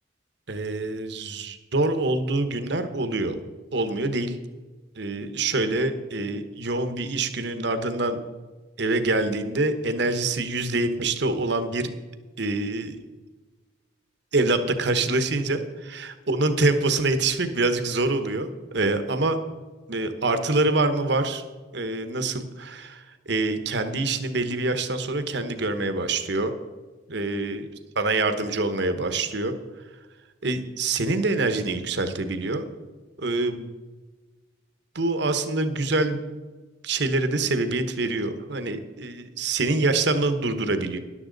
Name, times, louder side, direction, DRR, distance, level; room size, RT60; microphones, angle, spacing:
voice 1, 0.5-3.4 3.7-4.4 5.0-8.2 8.8-11.9 12.4-13.0 14.3-19.4 19.9-21.4 21.7-26.5 27.1-27.7 28.0-29.5 30.4-32.7 33.2-33.7 34.9-36.2 36.8-41.0, right 2 dB, 60° right, 9 dB, 1.1 m, -25 dB
13.5 x 11.0 x 4.0 m, 1.3 s
head